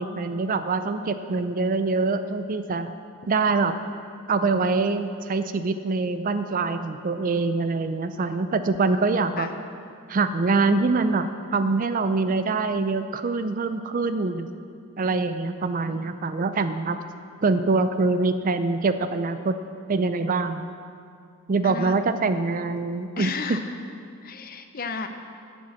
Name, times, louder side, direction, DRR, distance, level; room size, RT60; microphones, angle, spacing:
voice 1, 0.0-2.9 3.3-3.7 4.3-9.5 10.1-14.5 15.0-17.0 17.4-19.6 19.9-20.6 21.5-23.3, right 3 dB, 40° right, 10 dB, 0.4 m, -24 dB
voice 2, 21.6-22.0 23.2-23.7 24.2-25.1, left 4 dB, 40° left, 7 dB, 0.7 m, -33 dB
10.0 x 7.4 x 7.5 m, 2.4 s
head